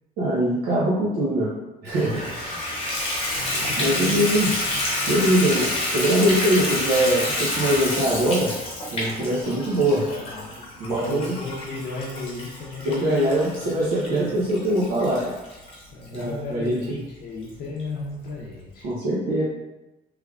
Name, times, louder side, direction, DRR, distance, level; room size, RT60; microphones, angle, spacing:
voice 1, 0.2-1.5 1.8-2.2 3.8-4.5 5.1-8.5 8.9-10.0 10.8-11.4 12.8-15.3 16.1-17.0 18.8-19.4, right 1 dB, 65° right, -7 dB, 0.7 m, -22 dB
Water tap faucet / Bathtub (filling or washing), 1.9-16.2 16.8-16.9 17.4-17.5 17.8-17.9, left 1 dB, 35° left, 0.8 m, -29 dB
voice 2, 3.3-4.3 10.1-10.5 10.8-13.7 14.1-14.4 15.9-18.9, left 3 dB, 60° left, -4 dB, 0.6 m, -35 dB
3.3 x 3.2 x 2.3 m, 1.0 s
cardioid pair, 175°, 17 cm